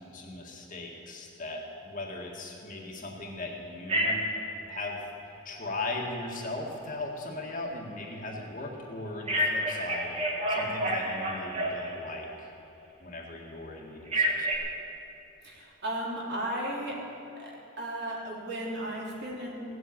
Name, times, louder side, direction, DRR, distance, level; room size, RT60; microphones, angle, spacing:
voice 1, 0.0-4.2 4.7-5.0 5.4-10.2 10.5-12.5 13.0-14.5, left 2 dB, 40° left, -1 dB, 1.9 m, -38 dB
Telephone, 3.9-4.4 9.3-12.1 14.1-14.6, equal, 30° right, 1.6 m, -28 dB
voice 2, 15.4-16.9 17.4-19.6, right 1 dB, 55° right, -4 dB, 3.2 m, -35 dB
17.5 x 7.9 x 8.5 m, 2.9 s
head